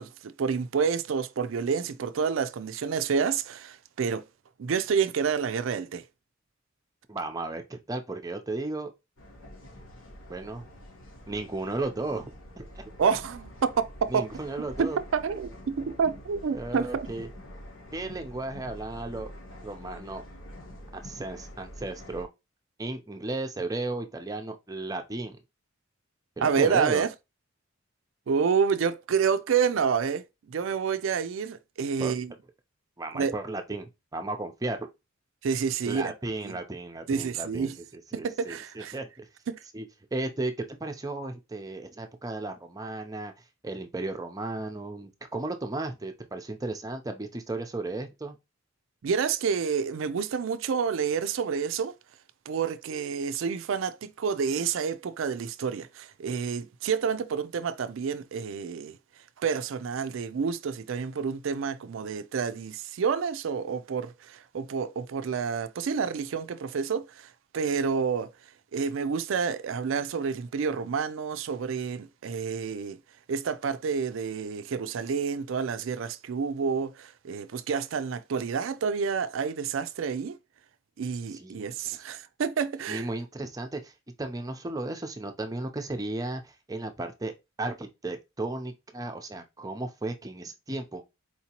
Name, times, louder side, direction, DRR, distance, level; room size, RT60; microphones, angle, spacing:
voice 1, 0.0-4.2 4.6-6.0 13.0-14.3 14.8-17.1 26.4-27.1 28.3-32.3 33.1-33.4 35.4-36.1 36.4-36.6 37.1-37.8 38.1-38.9 39.5-39.6 49.0-52.0 52.5-59.0 59.4-67.3 67.5-68.3 68.7-73.0 73.3-80.4 81.0-83.1, right 6 dB, 70° right, 0.4 m, -29 dB
voice 2, 7.1-8.9 10.3-10.7 11.3-12.9 14.1-15.0 16.5-17.3 17.9-19.3 19.6-20.2 20.9-22.3 22.8-25.4 26.4-27.1 32.0-32.1 33.0-34.9 35.9-39.3 39.7-39.8 40.1-40.5 40.8-43.3 43.6-48.4 81.3-82.0 82.9-83.9 84.2-87.3 87.6-91.0, right 2 dB, 20° right, 0.6 m, -35 dB
sound 1, 9.2-22.2, left 1 dB, 85° left, 1.2 m, -46 dB
4.4 x 2.9 x 2.9 m
head